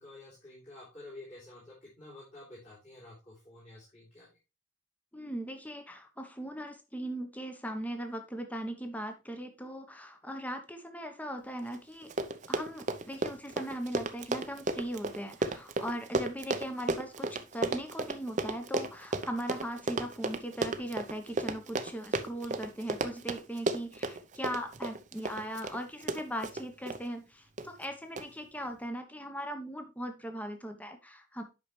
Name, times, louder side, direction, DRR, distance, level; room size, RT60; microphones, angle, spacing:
voice 1, 0.0-4.4, left 2 dB, 35° left, -9 dB, 3.5 m, -50 dB
voice 2, 5.1-12.1 12.5-31.4, equal, 10° left, 6 dB, 1.0 m, -39 dB
Run, 11.7-11.8 12.0-27.0 27.6-27.9 28.2-28.3, right 3 dB, 40° right, 0.6 m, -34 dB
8.4 x 5.7 x 3.2 m, 0.28 s
head